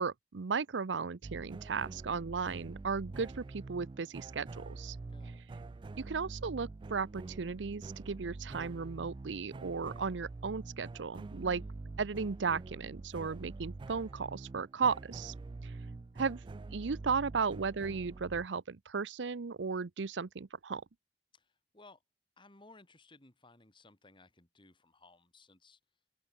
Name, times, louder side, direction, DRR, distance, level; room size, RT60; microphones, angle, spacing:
voice 1, 0.0-5.0 6.0-11.6 12.0-15.3 15.6-15.7 16.2-16.4 16.7-20.8, right 5 dB, 85° right, 0.6 m, -35 dB
sound 1, 1.2-18.5, right 3 dB, 25° right, 0.3 m, -46 dB
voice 2, 5.1-5.4 11.5-11.7 21.3-22.0 22.4-25.8, left 2 dB, 30° left, 3.0 m, -60 dB
open air
head